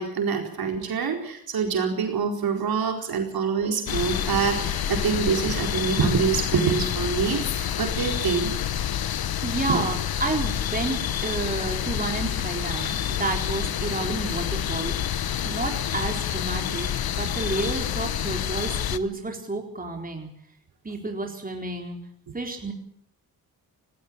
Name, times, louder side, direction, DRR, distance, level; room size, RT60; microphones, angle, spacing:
voice 1, 0.0-8.5 9.5-9.8, right 6 dB, 80° right, 3 dB, 4.5 m, -26 dB
sound 1, 3.9-19.0, left 10 dB, 80° left, 1.1 m, -28 dB
voice 2, 9.4-16.9 17.2-20.3 20.8-22.0 22.3-22.7, right 3 dB, 25° right, 2 dB, 4.2 m, -30 dB
18.5 x 17.5 x 8.8 m, 0.68 s
cardioid pair, 105°, 36 cm